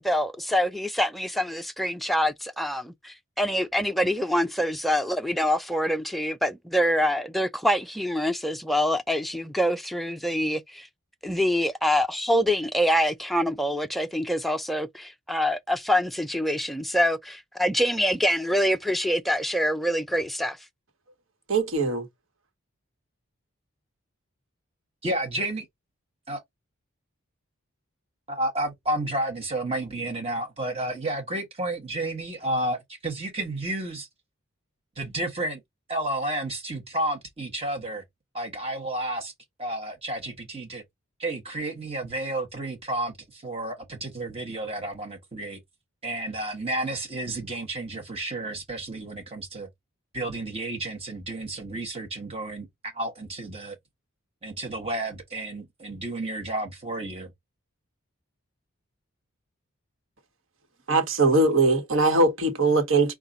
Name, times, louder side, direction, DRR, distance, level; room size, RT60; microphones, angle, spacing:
voice 1, 0.0-10.9 11.2-20.6, equal, ahead, 0.3 m, -25 dB
voice 2, 21.5-22.1 60.9-63.1, right 2 dB, 65° right, 1.4 m, -21 dB
voice 3, 25.0-25.7 26.3-26.4 28.3-34.1 35.0-35.6 35.9-38.0 38.3-39.3 39.6-40.8 41.2-45.6 46.0-49.7 50.1-52.7 52.9-53.8 54.4-57.3, right 1 dB, 25° right, 1.0 m, -31 dB
5.4 x 2.4 x 3.8 m
head